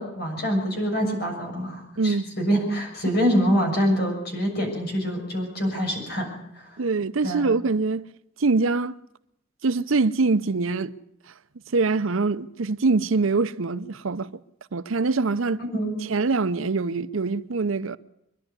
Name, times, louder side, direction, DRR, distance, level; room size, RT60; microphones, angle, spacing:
voice 1, 0.0-6.3 6.6-6.7 7.2-7.4 15.6-16.0, equal, 50° left, 6.8 m, -25 dB
voice 2, 2.0-2.3 6.8-8.1 8.4-8.9 9.6-10.9 11.7-14.3 14.7-15.6 16.1-18.0, right 3 dB, 75° right, 0.7 m, -24 dB
24.5 x 11.0 x 9.7 m
head